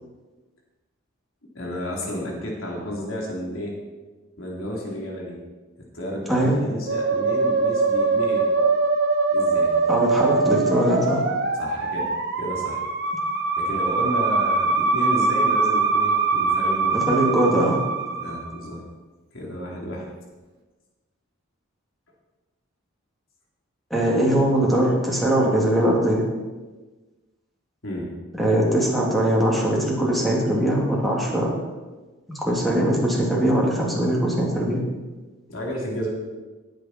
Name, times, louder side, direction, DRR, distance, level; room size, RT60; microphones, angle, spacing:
voice 1, 1.5-3.7 4.4-5.4 5.9-8.5 9.3-9.7 11.6-12.1 12.4-12.8 13.6-17.0 18.2-18.8 19.3-20.1 27.8-28.1 35.5-36.1, equal, 70° left, -2 dB, 3.7 m, -31 dB
Musical instrument, 6.9-18.6, right 4 dB, 50° right, 1.6 m, -22 dB
voice 2, 9.9-11.2 16.9-17.8 23.9-26.2 28.4-31.5 32.3-34.8, right 1 dB, ahead, -4 dB, 2.9 m, -21 dB
17.0 x 9.1 x 4.6 m, 1.2 s
head